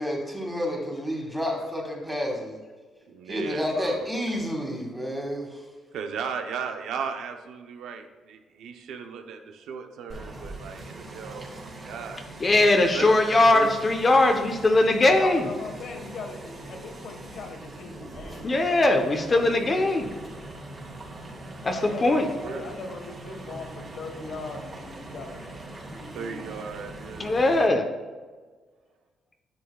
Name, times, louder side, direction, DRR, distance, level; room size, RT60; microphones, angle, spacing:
voice 1, 0.0-2.6 3.3-5.6, equal, 5° right, 0 dB, 2.0 m, -30 dB
voice 2, 3.1-4.1 5.9-12.3 12.9-13.7 21.8-21.9 22.4-22.6 26.1-27.4, right 6 dB, 80° right, 6 dB, 0.7 m, -36 dB
sound 1, 10.1-27.7, right 2 dB, 40° right, 2.1 m, -42 dB
voice 3, 12.4-15.5 18.4-20.1 21.6-22.3 27.2-27.9, left 2 dB, 35° left, 4 dB, 0.8 m, -20 dB
voice 4, 15.0-19.5 21.7-25.5 25.8-27.0, left 3 dB, 65° left, 3 dB, 1.4 m, -40 dB
10.5 x 6.4 x 2.3 m, 1.4 s
cardioid pair, 90°, 0 cm